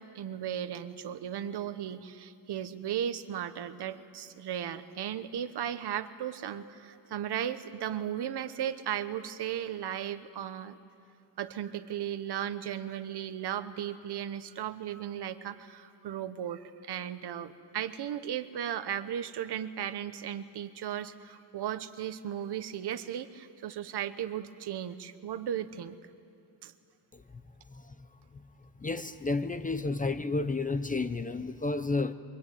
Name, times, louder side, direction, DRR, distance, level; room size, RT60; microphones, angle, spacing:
voice 1, 0.0-10.8 11.4-25.9 26.6-26.7, right 10 dB, 60° right, 11 dB, 1.2 m, -36 dB
voice 2, 27.7-28.1 28.3-28.4 28.8-32.1, left 3 dB, 20° left, 11 dB, 0.7 m, -31 dB
24.5 x 23.0 x 9.3 m, 2.5 s
cardioid pair, 125°, 45 cm